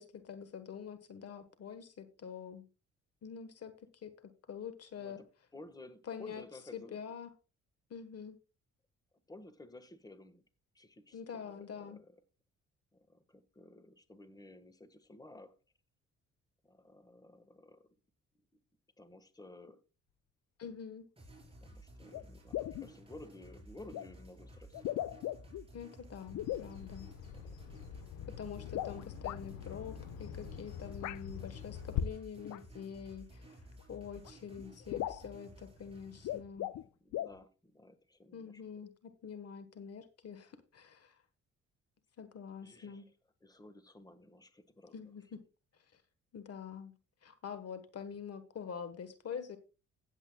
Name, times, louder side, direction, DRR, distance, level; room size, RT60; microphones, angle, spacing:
voice 1, 0.0-2.6 3.2-3.7 4.0-4.1 4.5-5.2 6.1-6.4 6.7-7.3 7.9-8.4 11.1-12.0 20.6-21.1 25.7-27.1 28.4-33.6 33.9-36.7 38.3-41.2 42.2-43.1 44.9-45.4 45.9-46.0 46.3-46.9 47.2-49.6, left 7 dB, 55° left, 1.4 m, -45 dB
voice 2, 5.5-7.0 9.3-10.4 10.7-12.1 12.9-15.5 16.6-17.8 19.0-19.8 21.6-24.8 27.2-27.5 36.8-38.6 42.6-43.0 43.4-45.1, left 2 dB, 15° left, 1.5 m, -54 dB
sound 1, 21.2-36.4, right 1 dB, 20° right, 4.7 m, -55 dB
sound 2, 22.1-22.2 22.5-22.9 23.9-24.1 24.7-25.6 26.3-26.7 28.6-29.4 31.0-31.2 32.4-32.6 33.8-33.9 34.2-34.3 34.6-34.7 34.9-35.3 36.1-36.9 37.1-37.4, left 13 dB, 70° left, 0.6 m, -38 dB
Bird vocalization bird call bird song, 26.3-32.0, left 10 dB, 85° left, 1.1 m, -43 dB
17.0 x 8.1 x 2.3 m
cardioid pair, 90°, 30 cm